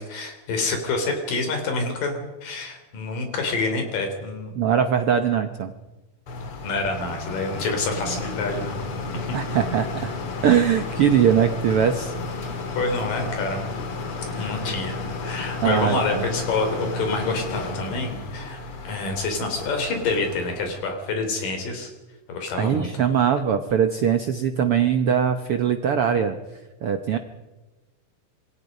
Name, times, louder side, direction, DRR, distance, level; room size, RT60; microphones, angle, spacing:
voice 1, 0.0-4.6 6.6-8.8 9.2-9.4 12.7-13.6 14.4-21.9 22.3-23.1, left 3 dB, 75° left, 5 dB, 5.1 m, -27 dB
voice 2, 4.6-5.7 9.3-10.1 10.4-12.1 14.3-14.6 15.6-16.3 22.6-26.4 26.8-27.2, right 8 dB, 70° right, 8 dB, 1.4 m, -21 dB
sound 1, 6.3-20.9, left 3 dB, 45° left, 2.6 m, -32 dB
27.0 x 22.0 x 5.4 m, 1.1 s
omnidirectional pair, 3.9 m